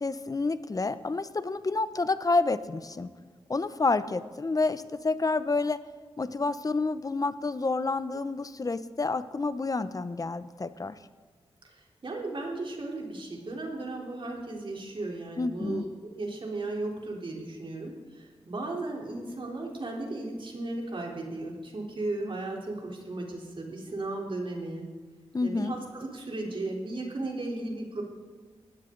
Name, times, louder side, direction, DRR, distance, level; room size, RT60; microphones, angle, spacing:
voice 1, 0.0-3.1 3.5-5.8 6.2-11.0 15.4-15.8 25.3-25.8, left 3 dB, 35° left, 13 dB, 0.8 m, -29 dB
voice 2, 11.6-24.9 25.4-28.0, right 2 dB, 55° right, -1 dB, 3.8 m, -35 dB
19.5 x 15.5 x 3.9 m, 1.5 s
wide cardioid pair, 90°, 11 cm